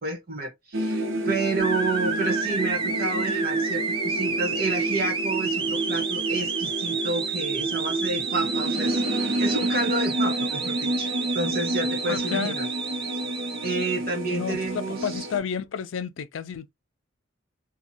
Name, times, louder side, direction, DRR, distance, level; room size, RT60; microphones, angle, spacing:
voice 1, 0.0-9.0 9.4-12.7 13.1-13.2 13.6-15.3, right 3 dB, 45° right, 1.2 m, -30 dB
sound 1, 0.7-15.4, right 1 dB, 70° right, 0.7 m, -29 dB
sound 2, 1.6-13.9, right 4 dB, 25° right, 0.4 m, -30 dB
voice 2, 12.1-12.6 14.3-16.7, left 7 dB, 70° left, 0.4 m, -31 dB
2.5 x 2.3 x 2.7 m
head